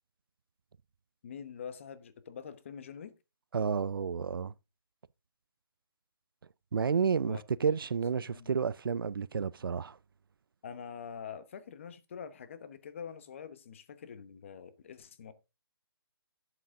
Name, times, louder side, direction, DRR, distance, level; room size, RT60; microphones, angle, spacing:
voice 1, 1.2-3.1 7.2-7.4 8.2-8.5 10.6-15.3, left 7 dB, 30° left, 1.1 m, -45 dB
voice 2, 3.5-4.5 6.7-10.0, right 6 dB, 65° right, 0.5 m, -31 dB
12.0 x 8.0 x 3.7 m
hypercardioid pair, 170°, 13 cm